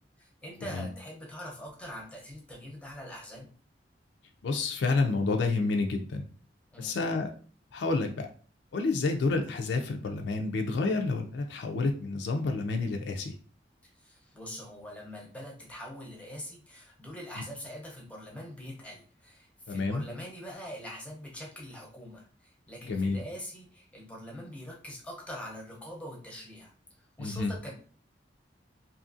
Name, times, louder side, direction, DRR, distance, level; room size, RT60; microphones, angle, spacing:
voice 1, 0.2-3.5 6.7-6.9 13.8-26.7 27.0-27.7, equal, 5° left, -2 dB, 0.6 m, -43 dB
voice 2, 4.4-6.2 6.8-7.3 7.7-8.3 8.7-13.3 19.7-20.0 22.9-23.2 27.2-27.5, left 3 dB, 75° left, 3 dB, 0.4 m, -29 dB
2.7 x 2.4 x 2.5 m, 0.42 s
head